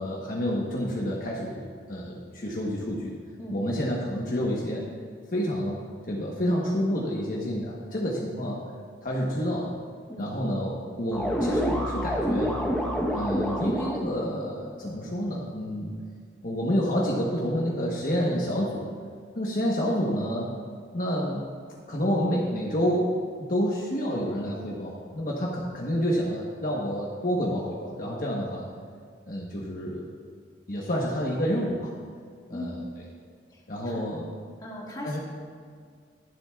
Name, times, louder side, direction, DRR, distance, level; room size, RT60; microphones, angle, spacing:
voice 1, 0.0-3.2 3.5-4.9 5.3-8.6 9.0-9.7 10.2-12.6 13.1-15.9 16.4-18.9 19.3-20.5 20.9-21.5 21.9-23.1 23.4-28.7 29.3-30.0 30.7-31.9 32.5-32.8 33.7-34.3 35.0-35.2, equal, 50° left, -3 dB, 1.1 m, -29 dB
voice 2, 3.4-3.9 10.1-10.5 32.5-32.8 33.5-33.6 33.9-34.0 34.6-35.2, left 1 dB, 20° left, -4 dB, 2.0 m, -38 dB
sound 1, 11.1-14.2, equal, 5° left, 1.0 m, -28 dB
23.0 x 7.7 x 2.4 m, 2.1 s
head